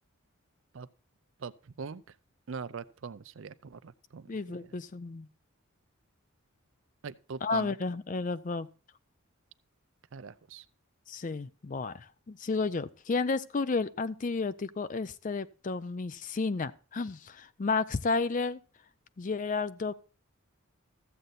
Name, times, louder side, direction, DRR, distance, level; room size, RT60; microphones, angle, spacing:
voice 1, 1.4-2.2 2.5-4.7 7.0-7.7 10.1-10.6, right 5 dB, 65° right, 0.5 m, -42 dB
voice 2, 4.3-5.3 7.4-8.7 11.1-18.6 19.2-19.9, left 4 dB, 35° left, 0.4 m, -32 dB
14.0 x 7.8 x 4.0 m
head